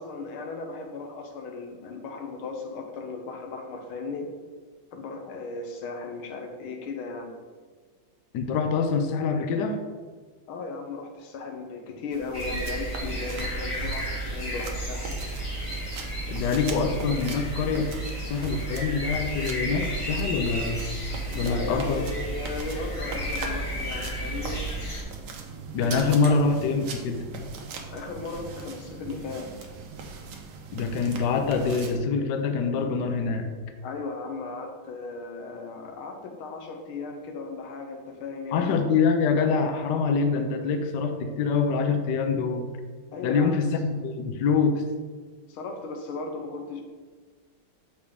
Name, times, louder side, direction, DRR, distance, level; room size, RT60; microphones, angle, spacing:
voice 1, 0.0-4.3 4.9-7.4 10.5-15.1 21.3-24.6 26.3-26.4 27.9-29.7 33.8-38.8 43.1-43.7 45.5-46.8, left 3 dB, 85° left, 3 dB, 1.7 m, -36 dB
voice 2, 8.3-9.8 16.3-17.9 18.2-20.8 21.3-22.0 25.7-27.2 30.7-33.5 38.5-42.7 43.2-44.8, left 5 dB, 70° left, 6 dB, 1.1 m, -25 dB
sound 1, 12.1-32.0, right 4 dB, 65° right, 1.3 m, -40 dB
sound 2, 12.3-25.0, right 1 dB, 25° left, 0.8 m, -33 dB
6.6 x 5.1 x 3.5 m, 1.5 s
omnidirectional pair, 2.2 m